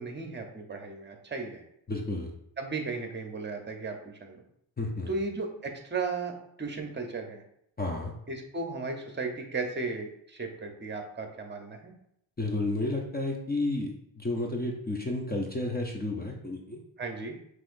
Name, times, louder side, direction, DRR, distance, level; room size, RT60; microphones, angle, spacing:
voice 1, 0.0-1.6 2.6-4.4 5.1-7.4 8.3-11.9 17.0-17.4, right 3 dB, 25° right, 4 dB, 0.8 m, -35 dB
voice 2, 1.9-2.3 4.8-5.1 7.8-8.1 12.4-16.8, left 2 dB, 20° left, 0 dB, 0.7 m, -31 dB
5.6 x 3.1 x 2.6 m, 0.73 s
cardioid pair, 85°, 43 cm